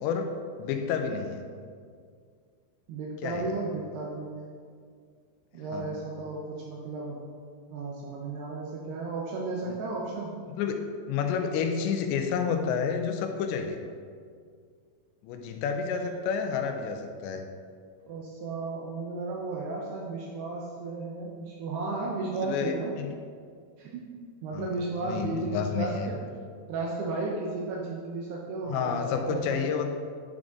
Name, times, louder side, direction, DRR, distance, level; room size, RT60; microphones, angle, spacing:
voice 1, 0.0-1.4 3.2-3.5 5.7-5.9 9.7-9.8 10.5-10.8 11.1-13.8 15.2-17.5 22.4-23.1 24.5-24.7 25.0-26.1 28.7-29.9, left 6 dB, 85° left, 5 dB, 2.8 m, -30 dB
voice 2, 2.9-4.5 5.5-7.3 7.7-10.3 18.1-23.0 23.8-24.1 24.4-26.2 26.7-29.6, right 3 dB, 75° right, -2 dB, 2.7 m, -34 dB
9.9 x 6.1 x 3.7 m, 2.1 s
omnidirectional pair, 5.1 m